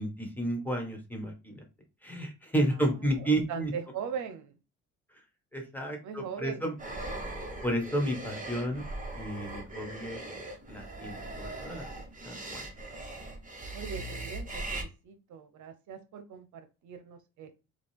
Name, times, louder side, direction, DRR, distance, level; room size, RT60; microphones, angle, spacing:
voice 1, 0.0-1.6 2.0-3.7 5.5-6.7 7.6-8.8 9.2-10.2 10.7-11.8 12.2-12.6, right 1 dB, 5° left, 3 dB, 1.5 m, -32 dB
voice 2, 2.7-4.6 6.0-6.6 13.7-17.5, right 7 dB, 75° right, 8 dB, 0.8 m, -41 dB
sound 1, 6.8-14.8, right 2 dB, 25° right, 1.3 m, -40 dB
4.9 x 2.4 x 3.4 m, 0.30 s
cardioid pair, 90°, 30 cm